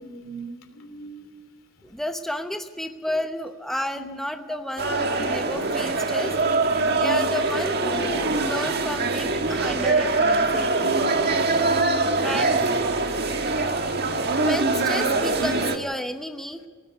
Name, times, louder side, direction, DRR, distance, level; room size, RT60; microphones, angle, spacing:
voice 1, 0.0-1.3 3.9-4.2 6.4-7.4 7.9-8.0 8.8-8.9 10.4-12.1, left 2 dB, 75° left, 3.0 m, -37 dB
voice 2, 1.8-6.4 7.0-10.7 12.2-12.6 14.4-16.6, left 1 dB, ahead, 0.8 m, -31 dB
sound 1, 4.8-15.8, right 3 dB, 50° right, 1.7 m, -23 dB
18.5 x 14.5 x 9.6 m
head